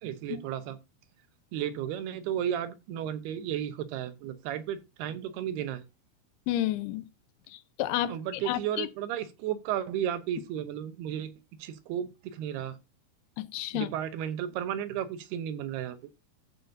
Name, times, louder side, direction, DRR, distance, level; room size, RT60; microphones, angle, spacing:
voice 1, 0.0-0.8 1.5-5.8 8.1-11.3 11.6-12.8 13.7-16.0, right 10 dB, 80° right, 2.9 m, -33 dB
voice 2, 6.5-7.0 7.5-8.2 8.5-8.9 13.4-13.9, left 14 dB, 85° left, 2.7 m, -30 dB
14.5 x 6.3 x 2.7 m
omnidirectional pair, 4.6 m